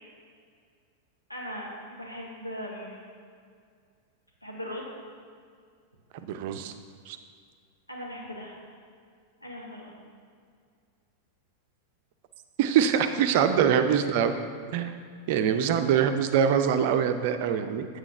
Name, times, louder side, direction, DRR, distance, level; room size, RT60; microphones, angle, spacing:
voice 1, 1.3-3.1 4.4-4.9 7.9-8.5 9.4-9.9, equal, 85° left, -3 dB, 1.4 m, -39 dB
voice 2, 6.2-6.7 7.1-7.2 12.6-14.3 14.7-14.9 15.3-17.9, right 8 dB, 50° right, 8 dB, 0.5 m, -24 dB
8.3 x 7.5 x 3.1 m, 2.1 s
figure-of-eight pair, 90°, 0 cm